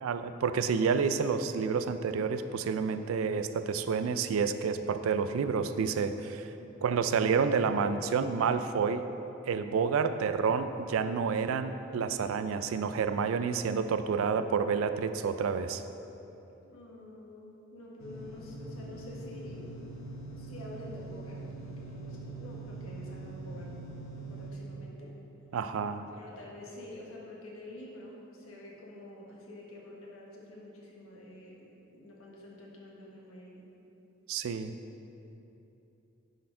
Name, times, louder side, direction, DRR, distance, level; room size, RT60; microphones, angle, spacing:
voice 1, 0.0-6.5 6.8-9.0 9.4-15.8 25.5-26.0 34.3-34.7, right 5 dB, 80° right, 10 dB, 0.3 m, -29 dB
voice 2, 6.5-6.9 16.6-19.7 20.4-23.7 24.3-25.2 26.1-33.6, left 1 dB, 90° left, -3 dB, 1.3 m, -48 dB
sound 1, 18.0-24.5, right 2 dB, 70° left, 0.9 m, -43 dB
10.0 x 4.2 x 3.7 m, 2.9 s
head